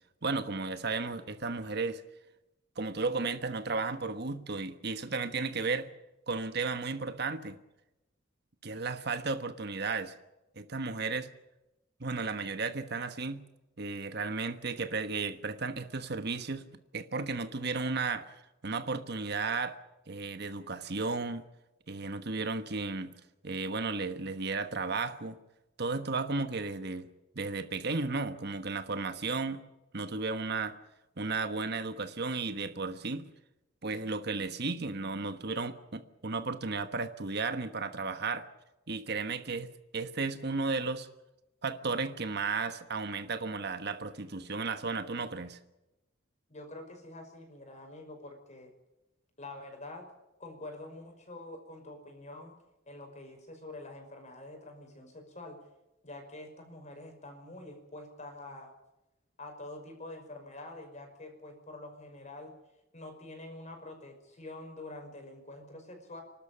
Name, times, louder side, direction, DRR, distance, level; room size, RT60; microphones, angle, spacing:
voice 1, 0.2-2.0 2.8-5.9 6.3-7.6 8.6-10.1 10.6-11.3 12.0-13.5 13.8-16.7 16.9-18.3 18.6-19.8 20.1-21.4 21.9-23.1 23.4-25.4 25.8-27.1 27.3-29.6 29.9-30.7 31.2-33.3 33.8-38.5 38.9-41.1 41.6-45.6, right 4 dB, 55° right, 1.3 m, -34 dB
voice 2, 46.5-48.7 49.4-50.1 50.4-52.6 52.9-55.6 56.0-58.7 59.4-62.6 62.9-66.2, left 2 dB, 35° left, 5.6 m, -46 dB
29.0 x 13.0 x 8.8 m
head